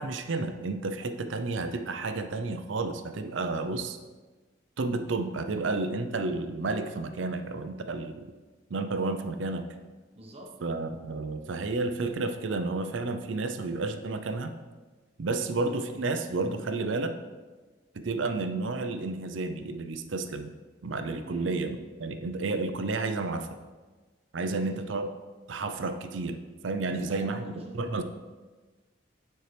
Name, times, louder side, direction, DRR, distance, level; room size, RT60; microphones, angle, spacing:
voice 1, 0.0-4.0 4.8-8.3 8.7-9.7 10.6-14.5 15.2-17.1 17.9-20.5 20.8-23.5 24.3-25.1 25.5-26.4 26.6-27.4 27.8-28.0, right 3 dB, 75° right, 8 dB, 0.5 m, -31 dB
voice 2, 10.2-10.6 21.2-21.6 24.4-24.8 26.8-28.0, right 1 dB, 30° right, 0 dB, 1.0 m, -46 dB
9.3 x 4.5 x 3.3 m, 1.3 s
head